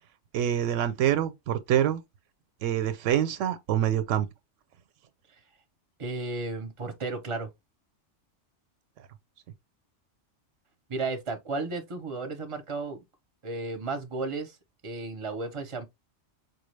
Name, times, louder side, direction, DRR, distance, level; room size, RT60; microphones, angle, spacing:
voice 1, 0.3-2.0 2.6-4.3, right 10 dB, 85° right, 0.9 m, -26 dB
voice 2, 6.0-7.5 10.9-13.0 13.4-14.6 14.8-15.9, right 3 dB, 35° right, 0.5 m, -33 dB
4.5 x 2.3 x 3.1 m
omnidirectional pair, 1.3 m